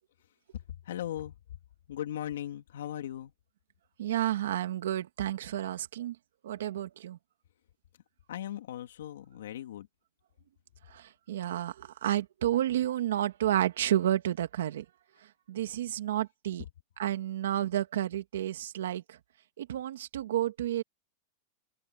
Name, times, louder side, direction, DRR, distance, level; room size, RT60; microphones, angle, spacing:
voice 1, 0.9-1.3 1.9-3.3 8.3-9.9, left 11 dB, 85° left, 3.5 m, -38 dB
voice 2, 4.0-6.2 6.4-7.2 10.9-14.8 15.5-16.6 17.0-19.2 19.6-20.8, right 12 dB, 90° right, 2.1 m, -31 dB
open air
supercardioid pair, 175°, 0 cm